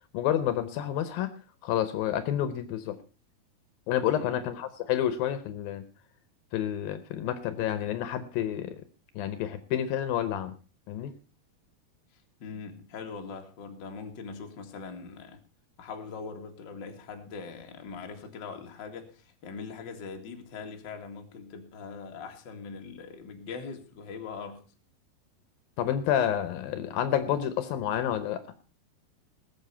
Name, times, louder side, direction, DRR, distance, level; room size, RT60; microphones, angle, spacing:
voice 1, 0.1-1.3 1.6-3.0 3.9-5.8 6.5-8.8 9.2-10.5 10.9-11.1 25.8-28.4, left 10 dB, 75° left, 12 dB, 2.6 m, -29 dB
voice 2, 4.1-4.5 12.4-15.4 15.8-24.7, left 5 dB, 40° left, 3 dB, 2.0 m, -41 dB
19.5 x 7.7 x 5.6 m, 0.36 s
omnidirectional pair, 4.4 m